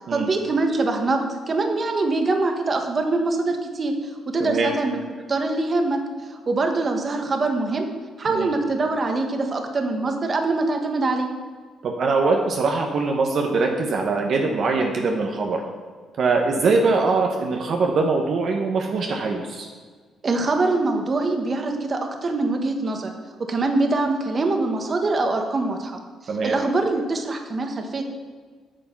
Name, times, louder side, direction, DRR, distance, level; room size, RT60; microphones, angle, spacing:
voice 1, 0.0-5.0 5.3-6.0 6.3-7.9 8.2-11.3 20.2-23.1 23.4-26.0 26.4-28.0, right 3 dB, 40° right, 4 dB, 1.4 m, -23 dB
voice 2, 4.4-4.7 8.3-8.5 11.8-15.6 16.2-19.7 26.3-26.6, right 4 dB, 60° right, 1 dB, 1.1 m, -22 dB
9.1 x 6.8 x 6.0 m, 1.5 s
cardioid pair, 90°, 0 cm